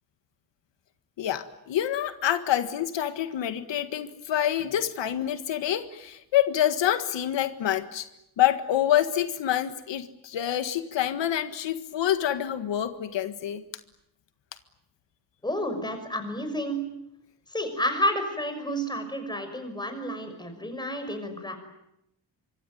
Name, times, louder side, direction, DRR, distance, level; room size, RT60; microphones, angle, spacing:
voice 1, 1.2-8.1 8.4-13.6, left 11 dB, 90° left, 9 dB, 1.8 m, -27 dB
voice 2, 15.4-16.8 17.5-21.6, equal, 10° left, 7 dB, 6.0 m, -30 dB
26.0 x 23.5 x 9.4 m, 0.82 s
wide cardioid pair, 140°, 42 cm